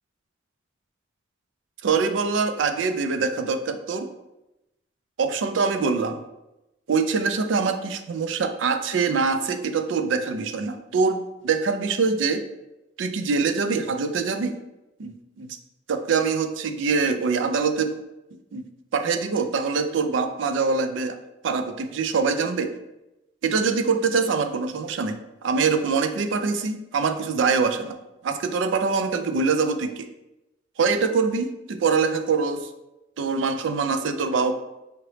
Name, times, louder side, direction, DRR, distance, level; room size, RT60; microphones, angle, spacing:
voice 1, 1.8-4.1 5.2-6.2 6.9-12.4 13.0-14.6 15.0-15.5 15.9-17.9 18.5-18.6 18.9-21.2 21.4-22.7 23.4-28.0 28.2-30.1 30.8-32.7 33.2-34.5, right 4 dB, 85° right, 9 dB, 0.4 m, -24 dB
4.9 x 2.9 x 3.2 m, 0.95 s
head